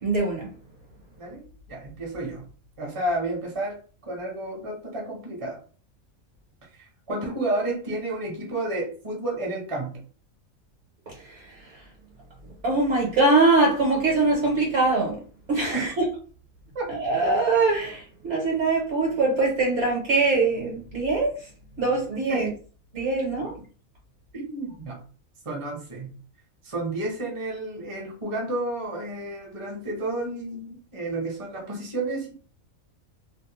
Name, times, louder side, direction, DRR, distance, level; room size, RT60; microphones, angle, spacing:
voice 1, 0.0-0.5 11.1-11.7 12.6-15.2 15.5-16.1 16.9-21.5 21.8-22.5 22.9-23.5, right 3 dB, 60° right, 1.0 m, -23 dB
voice 2, 1.2-2.4 2.8-3.8 4.0-5.6 6.7-10.0 15.7-15.9 16.7-16.9 22.3-22.4 24.3-25.0 25.4-26.2 26.6-32.3, right 2 dB, 30° right, 0.7 m, -31 dB
2.5 x 2.0 x 2.9 m
omnidirectional pair, 1.5 m